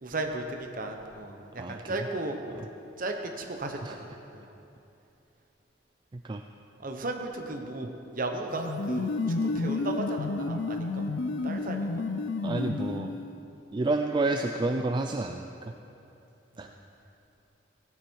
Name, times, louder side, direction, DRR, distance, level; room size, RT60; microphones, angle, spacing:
voice 1, 0.0-2.4 3.0-4.1 4.3-4.5 6.8-9.2 9.4-11.0 11.4-12.0 16.6-16.7, right 2 dB, 45° right, 4 dB, 1.1 m, -35 dB
sound 1, 8.5-13.4, left 3 dB, 70° left, 0.5 m, -31 dB
voice 2, 12.4-13.1 13.7-15.7 16.6-16.7, right 2 dB, 25° right, 5 dB, 0.3 m, -29 dB
15.0 x 9.8 x 4.6 m, 2.8 s
head